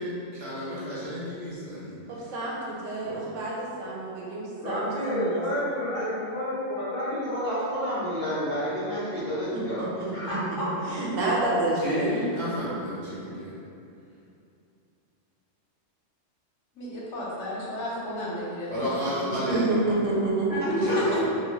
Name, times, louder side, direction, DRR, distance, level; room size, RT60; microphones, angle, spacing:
voice 1, 0.0-1.9 3.0-3.2 11.8-13.5 18.7-19.6 20.8-21.2, equal, 60° right, -9 dB, 1.0 m, -31 dB
voice 2, 2.1-5.4 9.5-10.1 10.8-12.1 19.5-20.8, right 2 dB, 85° right, -5 dB, 1.0 m, -28 dB
voice 3, 4.6-10.7 20.5-21.2, equal, 55° left, -10 dB, 0.5 m, -30 dB
voice 4, 16.8-19.5 20.7-21.2, left 1 dB, 75° left, -7 dB, 1.0 m, -31 dB
2.4 x 2.3 x 3.0 m, 2.6 s
omnidirectional pair, 1.3 m